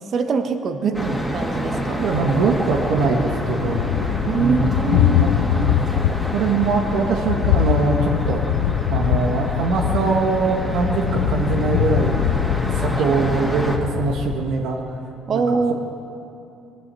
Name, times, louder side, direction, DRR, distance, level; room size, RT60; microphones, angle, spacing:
voice 1, 0.1-1.0 1.3-2.0 4.3-5.3 15.3-15.7, right 4 dB, 50° right, 8 dB, 1.1 m, -23 dB
voice 2, 0.8-1.2 2.0-3.8 4.4-4.7 5.2-5.8 6.3-8.4 8.9-12.4 12.6-14.8 15.3-15.7, right 4 dB, 80° right, 1 dB, 1.4 m, -22 dB
sound 1, 0.9-13.8, equal, 5° right, 2.3 m, -28 dB
Thunder, 2.0-14.7, left 11 dB, 90° left, 0.5 m, -23 dB
19.0 x 11.0 x 6.9 m, 2.7 s
cardioid pair, 100°, 0 cm